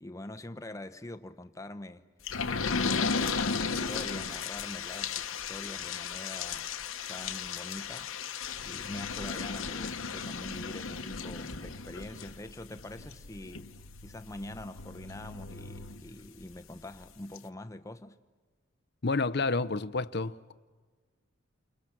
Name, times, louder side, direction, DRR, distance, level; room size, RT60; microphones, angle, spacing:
voice 1, 0.0-2.0 2.7-6.7 7.1-8.1 8.6-13.7 14.0-18.2, left 1 dB, 15° left, 0.8 m, -44 dB
sound 1, 2.3-16.6 17.0-17.1 17.4-17.5, left 5 dB, 80° left, 1.1 m, -35 dB
voice 2, 19.0-20.5, left 3 dB, 50° left, 0.7 m, -30 dB
30.0 x 29.0 x 6.0 m
head